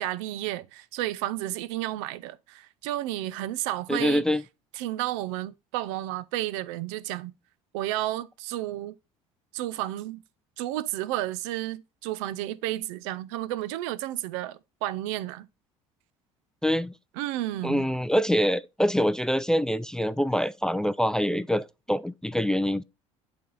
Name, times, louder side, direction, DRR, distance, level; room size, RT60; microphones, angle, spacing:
voice 1, 0.0-4.2 4.7-7.3 7.7-8.9 9.5-10.2 10.6-15.5 17.2-17.9, right 14 dB, 75° right, 0.5 m, -32 dB
voice 2, 3.9-4.4 16.6-16.9 17.6-22.8, equal, 5° left, 0.3 m, -25 dB
8.3 x 3.4 x 3.9 m
hypercardioid pair, 70°, 16 cm